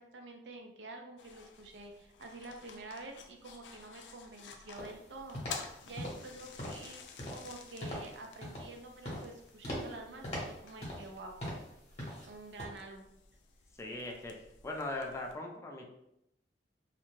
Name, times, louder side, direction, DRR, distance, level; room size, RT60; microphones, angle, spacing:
voice 1, 0.0-7.0 7.3-11.4 12.1-13.1, right 2 dB, 80° right, 4 dB, 0.5 m, -48 dB
sound 1, 1.2-15.3, left 5 dB, 80° left, 0.4 m, -52 dB
sound 2, 4.7-5.0 5.3-5.7 6.0-6.3 6.6-6.9 7.2-7.5 7.8-8.1 8.4-8.8 9.0-9.3 9.6-9.9 10.2-11.1 11.4-11.7 12.0-12.3 12.6-12.7, equal, 40° left, 0.9 m, -40 dB
voice 2, 13.8-14.3 14.6-15.9, left 2 dB, 15° left, 0 dB, 0.4 m, -39 dB
2.5 x 2.2 x 3.1 m, 0.81 s
head